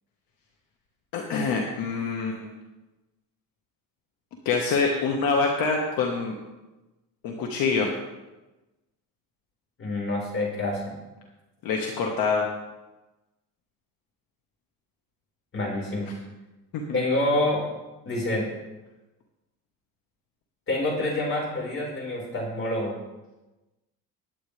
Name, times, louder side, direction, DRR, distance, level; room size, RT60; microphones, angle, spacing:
voice 1, 1.1-2.6 4.4-6.3 7.2-7.9 11.6-12.5 16.7-17.0, left 4 dB, 65° left, 0 dB, 1.7 m, -25 dB
voice 2, 9.8-10.8 15.5-16.1 16.9-17.7 18.1-18.5 20.7-23.0, left 1 dB, 35° left, -3 dB, 5.3 m, -27 dB
21.0 x 9.1 x 3.4 m, 1.1 s
cardioid pair, 155°, 38 cm